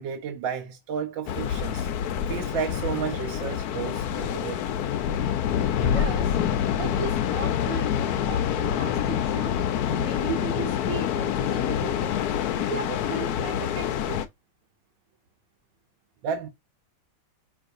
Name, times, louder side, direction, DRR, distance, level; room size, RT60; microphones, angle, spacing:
voice 1, 0.0-4.7 16.2-16.5, right 7 dB, 70° right, 1.4 m, -32 dB
sound 1, 1.3-14.3, left 9 dB, 75° left, 0.9 m, -26 dB
voice 2, 5.8-6.4 6.7-9.6 9.9-12.1 12.6-14.2, right 6 dB, 45° right, 1.5 m, -36 dB
5.4 x 3.3 x 2.6 m
omnidirectional pair, 2.2 m